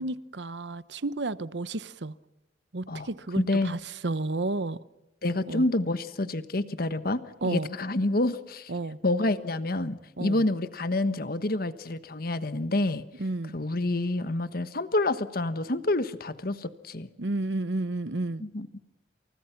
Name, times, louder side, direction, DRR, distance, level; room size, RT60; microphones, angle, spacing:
voice 1, 0.0-2.2 2.7-4.8 5.5-5.6 7.4-7.7 8.7-9.0 10.2-10.4 13.2-13.6 17.2-18.4, right 2 dB, 80° right, 16 dB, 1.0 m, -31 dB
voice 2, 3.4-3.7 5.2-8.7 9.0-13.0 13.5-17.1 18.4-18.7, left 2 dB, 55° left, 12 dB, 1.3 m, -28 dB
29.5 x 28.5 x 6.0 m, 0.95 s
head